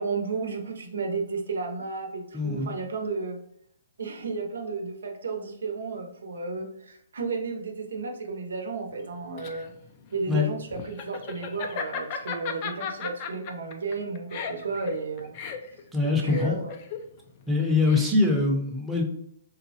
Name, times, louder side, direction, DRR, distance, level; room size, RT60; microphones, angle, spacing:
voice 1, 0.0-3.4 4.0-9.7 10.1-15.4 16.2-16.7, right 4 dB, 85° right, 3 dB, 0.7 m, -33 dB
voice 2, 2.3-2.7 10.3-10.5 15.9-16.6 17.5-19.0, left 3 dB, 5° right, -2 dB, 0.7 m, -23 dB
Laughter, 9.0-18.4, left 6 dB, 40° left, 0.4 m, -36 dB
4.0 x 2.1 x 2.7 m, 0.72 s
hypercardioid pair, 145°, 0 cm